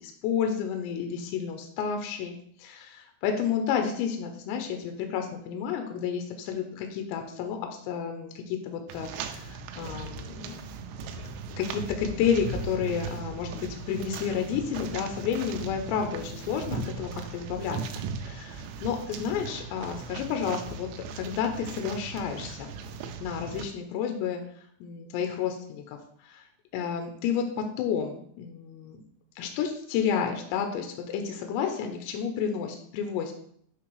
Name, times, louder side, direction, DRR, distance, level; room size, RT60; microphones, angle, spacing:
voice 1, 0.0-10.6 11.5-20.9 21.1-22.7 23.2-24.4 24.8-26.4 26.7-29.0 29.4-33.3, left 7 dB, 85° left, 5 dB, 2.7 m, -31 dB
sound 1, 8.9-23.7, right 5 dB, 85° right, 3.0 m, -38 dB
8.5 x 3.7 x 3.2 m, 0.64 s
omnidirectional pair, 5.5 m